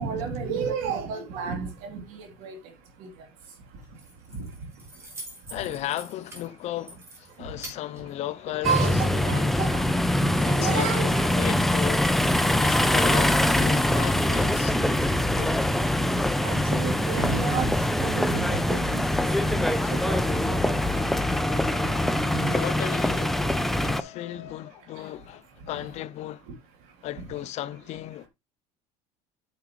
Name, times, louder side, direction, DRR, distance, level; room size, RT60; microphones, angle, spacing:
voice 1, 0.0-2.6 3.0-3.1 4.4-4.5 8.5-9.8 10.3-11.3 16.4-17.7 18.0-19.2 19.4-21.1 22.3-22.5, right 6 dB, 75° right, 3.1 m, -32 dB
Keys jangling, 3.7-8.8, right 1 dB, 20° right, 3.0 m, -46 dB
voice 2, 5.5-9.7 10.4-15.0 15.3-15.7 22.5-23.4 23.8-26.4 27.0-28.3, left 14 dB, 50° left, 0.6 m, -35 dB
sound 1, 8.6-24.0, left 1 dB, ahead, 0.5 m, -23 dB
sound 2, 19.2-25.3, left 13 dB, 75° left, 1.0 m, -44 dB
8.9 x 6.1 x 3.1 m
cardioid pair, 140°, 15 cm